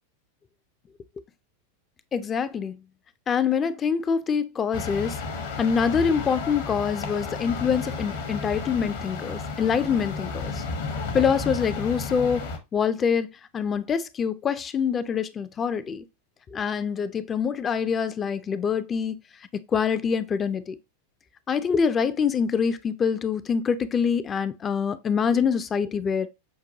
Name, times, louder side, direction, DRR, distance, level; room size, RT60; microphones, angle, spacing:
voice 1, 2.1-2.8 3.3-5.2 5.6-10.6 11.1-13.3 13.5-16.0 16.5-19.2 19.5-20.8 21.5-26.3, left 6 dB, 25° left, 0.3 m, -25 dB
sound 1, 4.7-12.6, left 4 dB, 60° left, 0.8 m, -32 dB
5.8 x 2.2 x 2.6 m
figure-of-eight pair, 90°, 0 cm